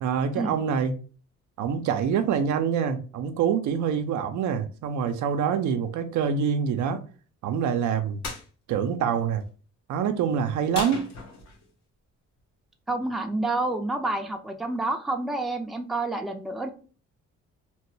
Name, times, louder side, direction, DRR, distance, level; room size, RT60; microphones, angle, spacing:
voice 1, 0.0-1.0 1.6-7.0 7.4-8.2 8.7-9.4 9.9-11.1, right 7 dB, 75° right, 0.6 m, -25 dB
sound 1, 8.2-8.5 10.7-11.7, left 3 dB, 60° left, 1.0 m, -35 dB
voice 2, 12.9-16.7, right 2 dB, ahead, 0.5 m, -28 dB
2.9 x 2.2 x 3.1 m
cardioid pair, 90°, 30 cm